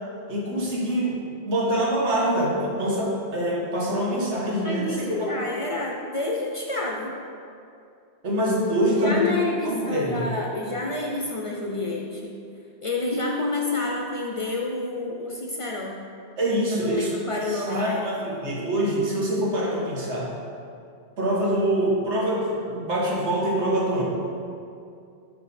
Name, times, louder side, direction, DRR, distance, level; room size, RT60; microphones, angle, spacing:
voice 1, 0.3-5.4 8.2-9.3 9.6-10.3 16.4-17.1 17.5-20.3 21.2-24.0, right 1 dB, 80° right, -3 dB, 1.5 m, -25 dB
voice 2, 4.6-7.1 8.8-12.4 12.8-16.0 16.8-18.3, left 2 dB, 40° left, -1 dB, 0.5 m, -29 dB
5.9 x 5.2 x 4.1 m, 2.5 s
omnidirectional pair, 1.1 m